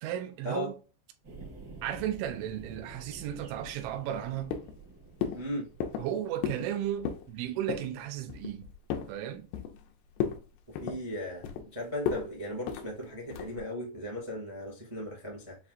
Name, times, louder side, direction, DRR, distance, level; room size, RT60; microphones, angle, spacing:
voice 1, 0.0-0.7 1.8-4.5 6.0-8.7 9.1-9.5, right 11 dB, 85° right, 3.1 m, -34 dB
sound 1, 1.2-6.2, right 2 dB, 60° right, 1.2 m, -49 dB
sound 2, 3.6-4.2 4.5-4.9 5.2-5.4 5.8-6.1 6.4-6.7 7.0-7.3 7.7-7.9 8.3-9.1 9.5-9.9 10.2-10.4 10.7-11.7 12.1-12.3 12.7-12.9 13.3-13.6, left 8 dB, 85° left, 2.3 m, -34 dB
voice 2, 5.3-5.7 10.7-11.4 11.7-15.6, left 1 dB, 25° right, 0.7 m, -37 dB
7.3 x 2.5 x 2.6 m
omnidirectional pair, 5.5 m